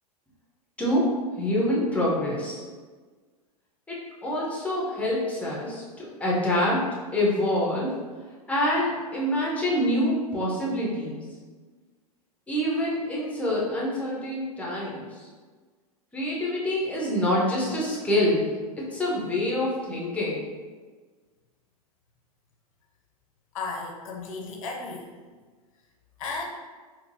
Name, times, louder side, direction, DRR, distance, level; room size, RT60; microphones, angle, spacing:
voice 1, 0.8-2.6 3.9-6.8 7.1-7.9 8.5-11.2 12.5-15.3 16.1-18.5 18.9-20.4, left 1 dB, 5° left, -5 dB, 0.8 m, -26 dB
voice 2, 23.5-25.1 26.2-26.4, left 3 dB, 55° left, 1 dB, 0.6 m, -34 dB
3.7 x 2.2 x 2.6 m, 1.4 s
figure-of-eight pair, 95°, 20 cm